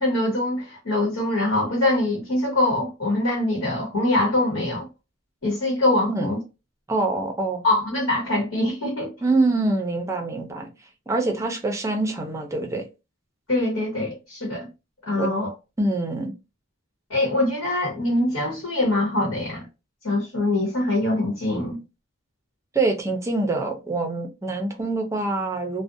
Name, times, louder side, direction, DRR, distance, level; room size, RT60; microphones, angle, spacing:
voice 1, 0.0-4.9 5.4-6.4 7.6-9.1 13.5-14.7 15.0-15.5 17.1-19.7 20.0-21.8, left 2 dB, 85° left, 1.1 m, -23 dB
voice 2, 6.9-7.6 9.2-10.7 11.1-12.9 15.1-15.3 15.8-16.3 22.7-25.8, right 2 dB, 15° right, 0.5 m, -25 dB
2.5 x 2.1 x 2.5 m
head